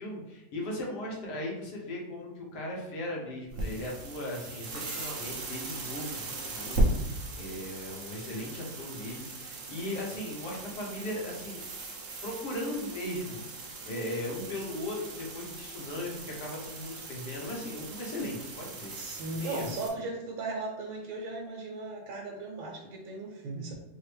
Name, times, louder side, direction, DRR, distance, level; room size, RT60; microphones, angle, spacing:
voice 1, 0.0-11.7 12.2-18.9 19.4-19.7, left 1 dB, 65° left, -2 dB, 1.6 m, -38 dB
sound 1, 3.5-19.9, right 2 dB, 55° right, 1.0 m, -37 dB
voice 2, 18.9-23.7, right 2 dB, 90° right, -1 dB, 1.6 m, -37 dB
4.8 x 2.7 x 3.3 m, 1.0 s
omnidirectional pair, 2.0 m